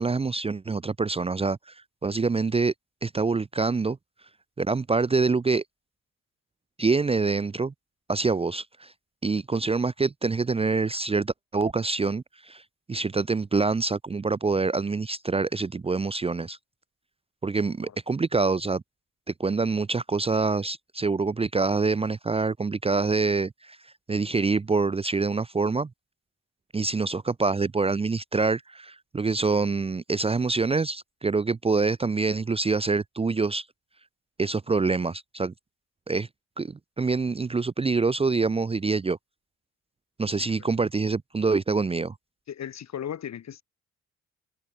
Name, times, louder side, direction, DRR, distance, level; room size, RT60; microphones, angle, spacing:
voice 1, 0.0-1.7 2.0-2.7 3.0-4.0 4.6-5.6 6.8-7.7 8.1-8.9 9.2-12.6 12.9-16.6 17.4-18.8 19.4-23.8 24.1-25.9 26.7-33.6 34.4-35.5 36.1-36.3 36.6-39.2 40.2-42.1, right 4 dB, 20° right, 0.6 m, -26 dB
voice 2, 42.5-43.6, left 9 dB, 60° left, 8.0 m, -37 dB
cardioid pair, 90°, 30 cm